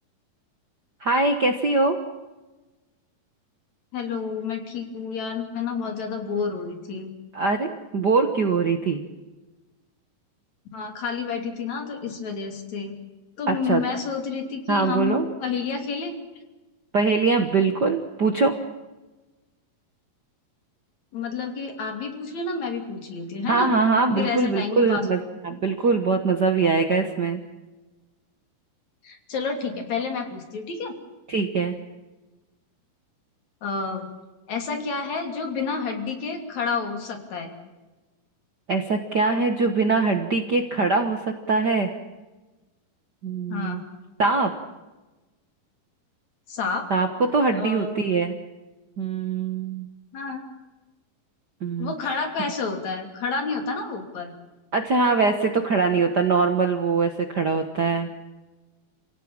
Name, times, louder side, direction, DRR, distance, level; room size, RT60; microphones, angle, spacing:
voice 1, 1.0-2.0 7.3-9.0 13.5-13.8 14.7-15.3 16.9-18.6 23.5-27.4 31.3-31.7 38.7-41.9 43.2-43.8 44.2-44.5 46.9-48.3 49.0-49.9 51.6-52.2 54.7-58.1, right 4 dB, 85° right, 6 dB, 0.9 m, -22 dB
voice 2, 3.9-7.1 10.7-12.9 13.4-16.2 21.1-23.7 24.2-25.1 29.0-31.0 33.6-34.1 34.5-37.5 43.5-43.8 46.5-46.8 47.5-48.0 50.1-50.4 51.8-54.3, left 5 dB, 50° left, 4 dB, 4.1 m, -29 dB
28.5 x 17.5 x 8.9 m, 1.1 s
omnidirectional pair, 4.3 m